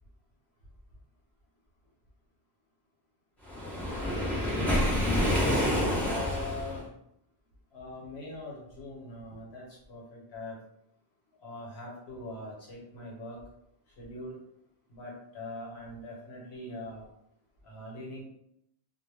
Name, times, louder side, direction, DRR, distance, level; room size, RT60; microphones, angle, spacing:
Waves surf, 3.5-6.8, left 1 dB, ahead, 0.6 m, -28 dB
voice 1, 5.0-6.9 7.7-10.6 11.4-13.4 14.0-14.4 14.9-17.1 17.6-18.2, left 2 dB, 80° left, -3 dB, 1.1 m, -42 dB
2.1 x 2.1 x 3.3 m, 0.76 s
omnidirectional pair, 1.1 m